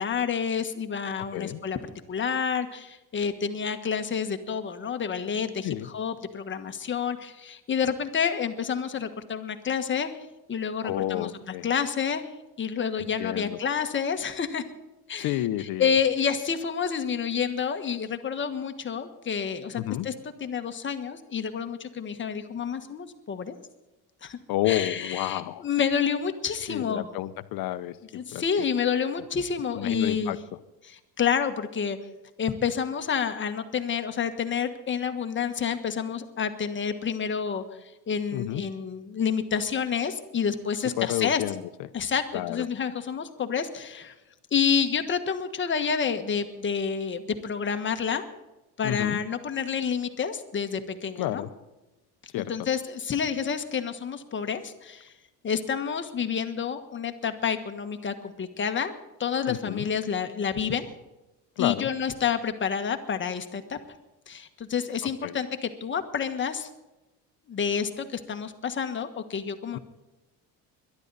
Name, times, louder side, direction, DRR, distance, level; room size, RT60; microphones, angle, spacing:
voice 1, 0.0-1.8 2.1-10.2 10.5-11.3 11.6-12.3 12.6-14.6 15.1-20.1 20.4-23.6 24.2-24.4 24.7-27.1 28.1-30.4 30.8-32.0 32.4-37.6 38.1-41.4 41.9-44.1 44.5-48.2 48.8-51.5 52.4-55.1 55.4-58.9 59.2-60.9 61.6-63.8 64.3-66.7 67.5-69.8, left 7 dB, 30° left, 7 dB, 1.4 m, -29 dB
voice 2, 1.2-1.6 5.6-5.9 10.8-11.7 13.0-13.6 15.2-15.9 19.7-20.1 24.5-25.6 26.7-28.7 29.7-30.4 38.3-38.6 41.0-41.9 42.3-42.6 48.8-49.2 51.2-51.5 52.3-52.5 59.5-59.9 61.6-61.9 65.2-65.4 69.7-69.8, left 14 dB, 65° left, 13 dB, 1.0 m, -30 dB
22.0 x 12.0 x 4.1 m, 1.0 s
cardioid pair, 130°, 39 cm